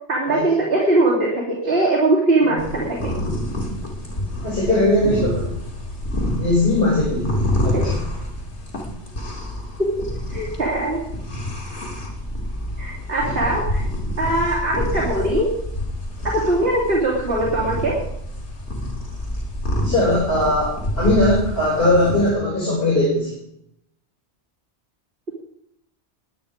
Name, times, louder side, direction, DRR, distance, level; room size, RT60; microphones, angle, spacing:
voice 1, 0.1-3.1 7.7-7.8 9.8-11.0 12.8-13.8 14.2-15.5 16.2-18.0, right 2 dB, 60° right, -5 dB, 3.1 m, -21 dB
sound 1, 2.6-22.3, left 1 dB, 85° left, 3.5 m, -27 dB
voice 2, 4.4-5.6 6.4-7.3 7.6-7.9 19.8-23.3, left 1 dB, 55° left, -5 dB, 5.1 m, -19 dB
21.5 x 8.8 x 5.1 m, 0.75 s
omnidirectional pair, 1.1 m